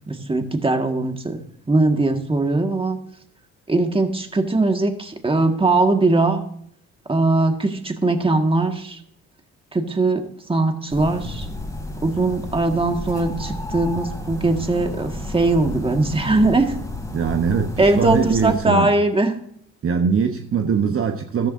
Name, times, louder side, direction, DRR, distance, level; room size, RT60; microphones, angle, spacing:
voice 1, 0.1-1.4 1.7-3.0 3.7-6.4 7.1-9.0 9.7-11.5 12.0-16.8 17.8-19.3, right 2 dB, 20° right, 1.8 m, -20 dB
sound 1, 10.9-18.6, left 1 dB, 10° left, 2.9 m, -32 dB
voice 2, 17.1-18.9 19.8-21.5, right 6 dB, 45° right, 1.0 m, -21 dB
14.0 x 12.5 x 2.7 m
cardioid pair, 90°, 30 cm